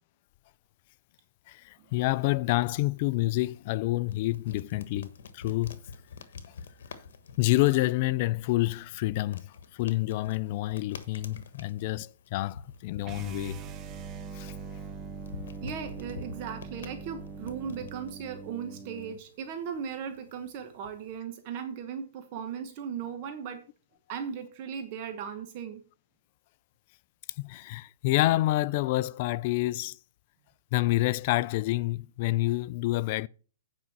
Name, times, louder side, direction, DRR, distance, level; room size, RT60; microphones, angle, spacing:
voice 1, 1.5-5.8 7.4-13.6 14.3-14.5 27.4-30.0 30.7-33.3, left 18 dB, 40° left, 0.3 m, -28 dB
sound 1, 3.0-21.2, left 5 dB, 75° left, 1.2 m, -48 dB
sound 2, 13.0-19.2, right 5 dB, 20° right, 0.7 m, -42 dB
voice 2, 15.6-23.6 24.1-25.8, right 7 dB, 35° right, 1.1 m, -37 dB
8.9 x 5.1 x 5.9 m
hypercardioid pair, 155°, 0 cm